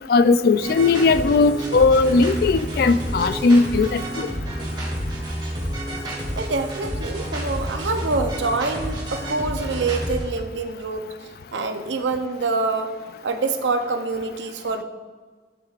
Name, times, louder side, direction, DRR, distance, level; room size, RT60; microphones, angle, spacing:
voice 1, 0.1-4.3, left 3 dB, 55° left, 13 dB, 0.3 m, -18 dB
sound 1, 0.6-10.2, equal, 25° right, 1.9 m, -29 dB
voice 2, 6.4-11.1 11.5-13.0 13.2-14.8, right 3 dB, 85° right, 6 dB, 0.7 m, -26 dB
11.0 x 6.2 x 2.5 m, 1.5 s
head